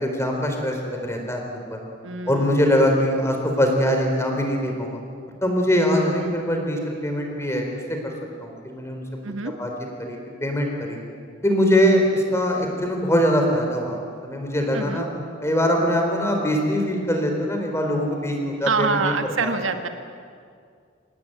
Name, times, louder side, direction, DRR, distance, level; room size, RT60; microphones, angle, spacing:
voice 1, 0.0-1.4 1.7-1.8 2.3-5.0 5.4-8.0 8.4-9.0 9.6-9.7 10.0-11.0 11.4-15.1 15.4-19.5, equal, 15° left, 2 dB, 4.2 m, -22 dB
voice 2, 2.0-2.7 6.2-6.3 9.2-9.5 14.7-15.0 18.7-19.9, right 4 dB, 75° right, 6 dB, 1.6 m, -26 dB
25.5 x 18.5 x 9.3 m, 2.2 s
head